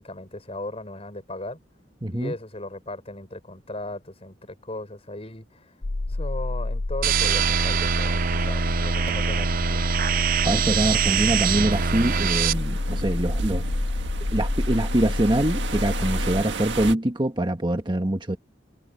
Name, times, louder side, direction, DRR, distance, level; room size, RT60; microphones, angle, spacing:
voice 1, 0.0-1.6 2.1-5.8 6.1-9.9, left 2 dB, 35° left, 5.3 m, -37 dB
voice 2, 2.0-2.3 10.4-13.6 14.3-18.4, right 1 dB, 25° right, 1.4 m, -24 dB
sound 1, 5.8-16.4, left 2 dB, 55° left, 0.7 m, -28 dB
sound 2, 7.0-12.5, right 8 dB, 50° right, 0.4 m, -24 dB
sound 3, 11.7-16.9, right 2 dB, 70° right, 1.7 m, -32 dB
head